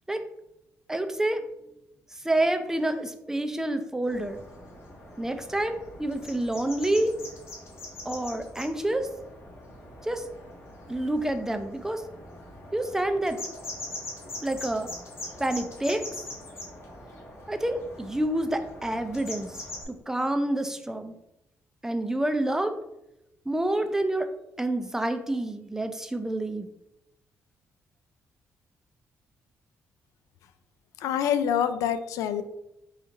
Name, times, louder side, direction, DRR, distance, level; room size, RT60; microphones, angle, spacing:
voice 1, 0.9-1.4 2.2-4.4 5.2-7.1 8.1-9.1 10.0-10.2 10.9-12.0 12.7-13.4 14.4-14.9 15.4-16.0 17.5-19.6 19.9-21.1 21.8-22.7 23.5-24.3 24.6-26.7, right 1 dB, 10° right, 8 dB, 0.5 m, -28 dB
sound 1, 4.1-19.8, left 1 dB, 55° left, 1.5 m, -42 dB
voice 2, 31.0-32.4, left 9 dB, 90° left, 11 dB, 0.3 m, -26 dB
4.3 x 2.4 x 3.9 m, 0.87 s
cardioid pair, 85°, 5 cm